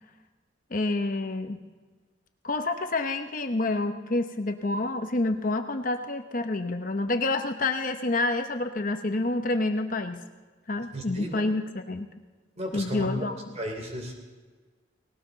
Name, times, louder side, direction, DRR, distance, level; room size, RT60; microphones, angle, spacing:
voice 1, 0.7-1.6 2.4-10.2 10.7-12.1 12.7-13.3, left 2 dB, 45° left, 6 dB, 0.9 m, -28 dB
voice 2, 10.9-11.4 12.6-13.1 13.5-14.1, equal, 35° right, 3 dB, 3.3 m, -34 dB
19.0 x 18.5 x 4.0 m, 1.4 s
head